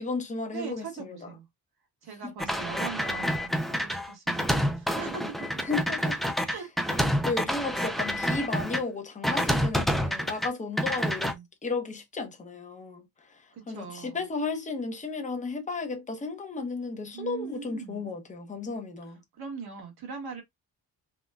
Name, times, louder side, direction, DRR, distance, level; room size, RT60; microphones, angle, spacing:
voice 1, 0.0-1.3 2.2-2.3 5.6-6.6 7.2-11.4 11.6-19.2, left 4 dB, 20° left, 0.8 m, -34 dB
voice 2, 0.5-1.5 2.0-5.6 6.4-7.0 8.1-8.3 11.1-11.4 13.5-14.2 17.1-18.0 19.4-20.4, right 6 dB, 80° right, 1.5 m, -41 dB
sound 1, 2.4-8.8 9.2-10.5 10.8-11.3, equal, ahead, 0.3 m, -28 dB
3.7 x 2.2 x 2.2 m
cardioid pair, 115°, 38 cm